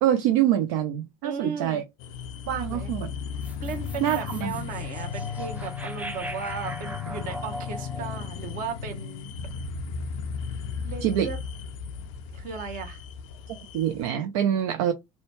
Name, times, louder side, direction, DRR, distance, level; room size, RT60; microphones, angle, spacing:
voice 1, 0.0-1.8 2.5-3.1 4.0-4.5 11.0-11.3 13.7-14.9, right 11 dB, 80° right, 0.4 m, -25 dB
voice 2, 1.2-1.8 2.5-2.9 3.6-9.3 10.8-11.4 12.3-13.0, right 6 dB, 60° right, 0.9 m, -36 dB
sound 1, 2.0-14.1, left 6 dB, 75° left, 0.4 m, -35 dB
sound 2, 3.4-9.7, right 1 dB, 10° right, 0.4 m, -40 dB
2.7 x 2.2 x 2.8 m
hypercardioid pair, 70°, 16 cm